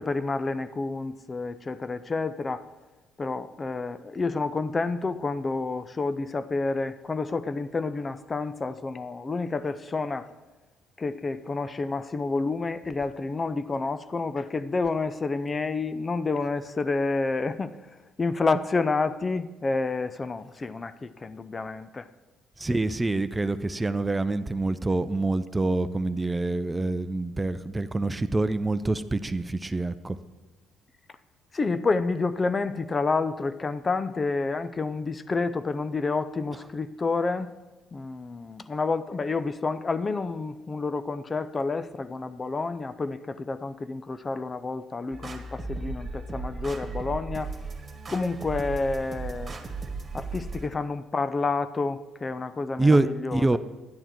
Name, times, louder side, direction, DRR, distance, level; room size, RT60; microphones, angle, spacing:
voice 1, 0.0-2.6 3.2-10.3 11.0-17.7 18.2-22.1 31.5-37.5 37.9-47.5 48.1-49.6 50.1-53.6, left 3 dB, 30° left, 14 dB, 0.6 m, -29 dB
voice 2, 22.6-30.2 52.8-53.6, right 2 dB, 20° right, 13 dB, 0.6 m, -26 dB
sound 1, 45.1-50.7, right 3 dB, 35° right, 1.8 m, -36 dB
11.0 x 10.5 x 4.5 m, 1.2 s
hypercardioid pair, 55°, 0 cm